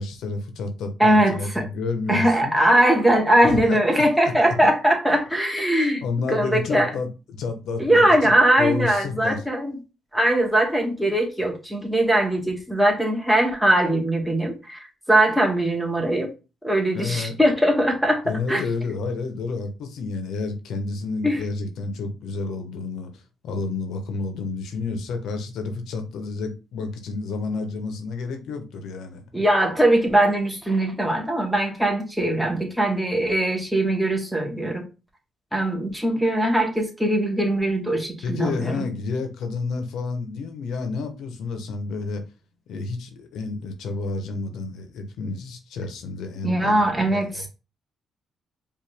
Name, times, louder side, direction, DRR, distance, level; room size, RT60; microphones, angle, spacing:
voice 1, 0.0-2.5 3.4-3.8 6.0-9.4 16.9-17.4 18.2-23.1 23.4-29.2 38.2-42.2 42.7-46.8 47.1-47.5, left 4 dB, 80° left, 0.9 m, -30 dB
voice 2, 1.0-1.7 2.1-6.0 6.3-6.9 7.8-9.8 10.1-16.3 16.6-18.7 21.2-21.4 29.3-34.8 35.5-38.9 46.4-47.5, right 1 dB, 5° right, 1.4 m, -21 dB
4.9 x 2.6 x 3.3 m
cardioid pair, 90°, 0 cm